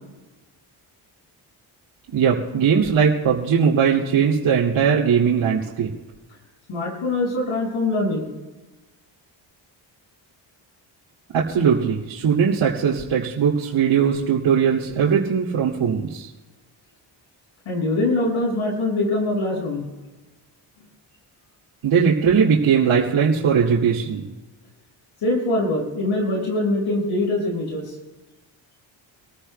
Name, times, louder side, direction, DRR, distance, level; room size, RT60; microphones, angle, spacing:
voice 1, 2.1-5.9 11.3-16.3 21.8-24.3, right 7 dB, 75° right, -6 dB, 2.4 m, -19 dB
voice 2, 6.7-8.3 17.7-19.8 25.2-27.9, left 2 dB, 80° left, -1 dB, 5.8 m, -23 dB
27.0 x 15.0 x 2.2 m, 1.2 s
cardioid pair, 70°, 48 cm